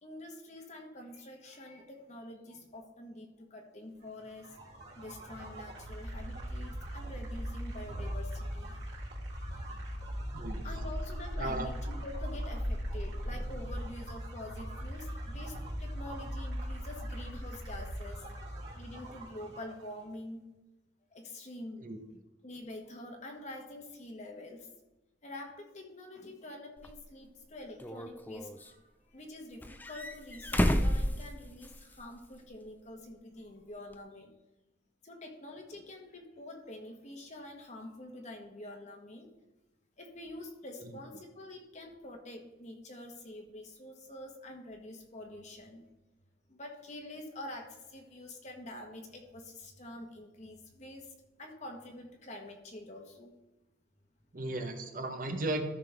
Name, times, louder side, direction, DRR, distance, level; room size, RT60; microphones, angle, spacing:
voice 1, 0.0-4.5 4.9-8.8 10.6-18.3 18.7-20.5 21.1-21.9 22.4-24.7 25.2-28.8 29.1-34.3 35.0-39.3 40.0-45.9 46.5-51.1 51.4-53.3, left 1 dB, 35° left, 2 dB, 1.3 m, -46 dB
sound 1, 4.3-20.0, equal, 65° right, 3.1 m, -39 dB
voice 2, 10.3-10.6 11.4-11.7 21.8-22.0 40.9-41.0 54.3-55.6, right 2 dB, 45° right, 6 dB, 1.1 m, -35 dB
sound 2, 26.8-26.9 27.8-28.7 29.6-31.9 32.2-32.3 33.9-34.0, equal, 10° left, 0.5 m, -31 dB
14.0 x 5.9 x 3.5 m, 1.0 s
head